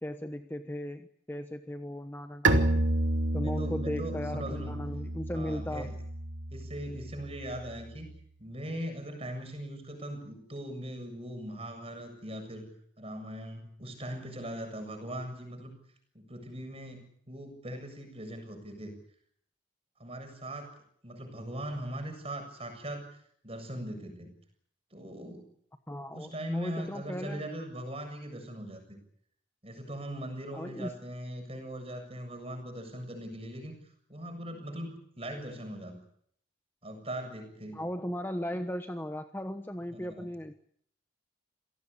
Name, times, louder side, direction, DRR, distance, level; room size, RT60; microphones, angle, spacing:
voice 1, 0.0-2.8 3.3-5.9 25.9-27.5 30.5-30.9 37.7-40.5, equal, 10° left, 6 dB, 1.1 m, -37 dB
Bowed string instrument, 2.4-8.0, right 2 dB, 75° right, 2.6 m, -31 dB
voice 2, 3.4-4.9 5.3-5.9 6.5-8.1 8.4-12.7 13.0-15.7 16.1-18.9 20.0-20.7 21.0-23.1 23.4-24.3 24.9-25.5 26.1-29.0 29.6-33.8 34.1-36.0 36.8-37.8 39.9-40.3, right 1 dB, 30° right, 6 dB, 7.3 m, -40 dB
28.0 x 18.5 x 8.5 m, 0.68 s
head